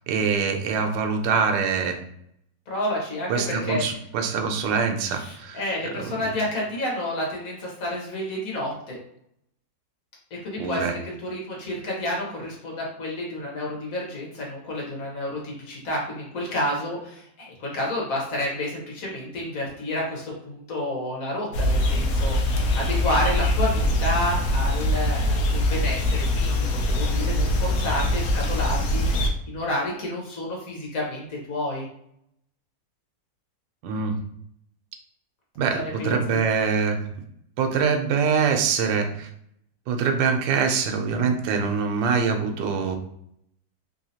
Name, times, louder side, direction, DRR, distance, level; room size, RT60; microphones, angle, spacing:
voice 1, 0.1-2.0 3.3-5.6 6.0-6.3 10.6-11.0 33.8-34.2 35.6-37.1 37.6-39.3 39.9-43.0, right 5 dB, 90° right, 4 dB, 1.3 m, -24 dB
voice 2, 2.7-3.9 5.1-9.0 10.3-31.9 35.7-36.4, left 1 dB, 55° left, -3 dB, 1.4 m, -30 dB
sound 1, 21.5-29.3, left 1 dB, 75° left, 0.8 m, -23 dB
3.3 x 2.7 x 2.7 m, 0.72 s
omnidirectional pair, 2.0 m